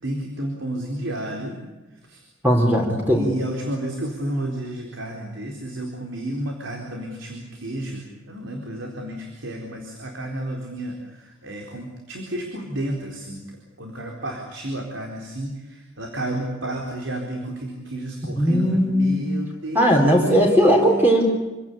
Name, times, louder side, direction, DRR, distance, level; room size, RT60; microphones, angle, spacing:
voice 1, 0.0-1.6 2.1-2.2 3.1-13.4 13.8-21.2, right 1 dB, 75° right, 1 dB, 4.1 m, -31 dB
voice 2, 2.4-3.2 18.4-19.3 19.7-21.2, equal, 10° right, 0 dB, 4.3 m, -18 dB
27.0 x 17.5 x 8.5 m, 1.1 s
head